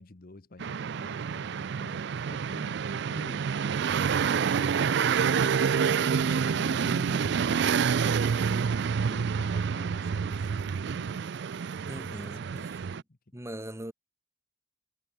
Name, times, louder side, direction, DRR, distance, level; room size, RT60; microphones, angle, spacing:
voice 1, 0.0-3.5 4.3-11.3 12.1-13.2, left 2 dB, 50° left, 1.1 m, -50 dB
sound 1, 0.6-13.0, right 6 dB, 60° right, 0.4 m, -28 dB
sound 2, 4.9-8.6, left 1 dB, 85° left, 4.7 m, -48 dB
voice 2, 11.9-13.0 13.3-13.9, right 1 dB, 15° right, 2.3 m, -41 dB
head